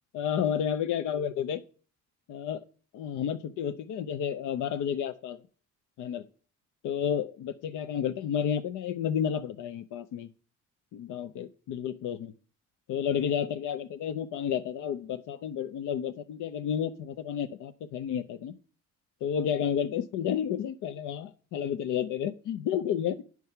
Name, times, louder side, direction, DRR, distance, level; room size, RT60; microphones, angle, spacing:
voice 1, 0.1-1.6 2.3-2.6 2.9-5.4 6.0-6.2 6.8-10.3 10.9-12.3 12.9-18.5 19.2-23.2, left 8 dB, 80° left, 10 dB, 0.6 m, -31 dB
9.5 x 4.7 x 5.5 m, 0.41 s
cardioid pair, 90°, 30 cm